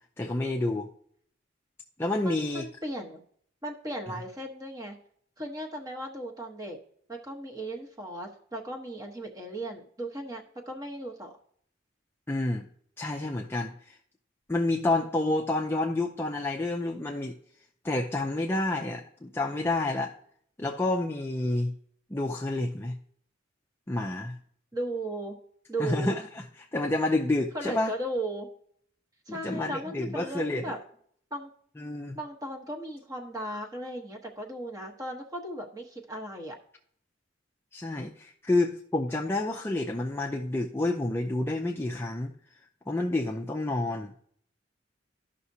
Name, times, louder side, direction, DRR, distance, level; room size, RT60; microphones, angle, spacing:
voice 1, 0.2-0.9 2.0-2.7 12.3-12.7 13.0-14.0 14.5-17.3 17.8-20.1 20.6-21.7 22.1-22.9 23.9-24.3 25.8-27.9 29.3-30.8 31.8-32.2 37.7-42.3 42.9-44.1, left 2 dB, 10° left, 0 dB, 0.5 m, -29 dB
voice 2, 2.2-3.2 3.6-5.0 5.4-6.8 7.1-11.3 24.7-25.4 25.7-26.1 27.5-28.5 29.3-30.8 31.3-31.5 32.1-36.6, right 1 dB, 20° right, 1 dB, 1.1 m, -36 dB
12.5 x 5.8 x 2.7 m, 0.62 s
head